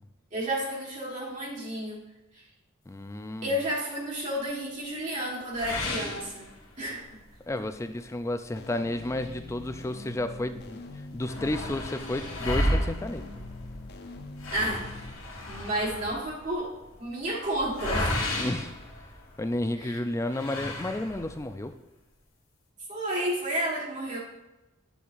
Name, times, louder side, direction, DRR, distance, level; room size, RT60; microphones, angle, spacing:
voice 1, 0.3-2.0 3.4-6.5 6.8-7.0 14.5-14.9 15.5-16.7 17.0-18.1 19.8-20.0 22.9-24.2, right 1 dB, 35° right, -5 dB, 1.5 m, -31 dB
voice 2, 2.9-3.6 7.5-10.8 11.1-13.2 18.4-18.7 19.4-21.7, left 1 dB, 15° left, 9 dB, 0.3 m, -32 dB
sound 1, 5.5-7.0 7.4-7.5 8.0-8.1 8.9-10.2 10.5-10.6 10.9-19.6 20.3-21.4, left 1 dB, 70° left, 1.9 m, -33 dB
sound 2, 8.6-15.1, left 3 dB, 50° left, 0.6 m, -45 dB
10.0 x 7.0 x 2.5 m, 0.98 s
head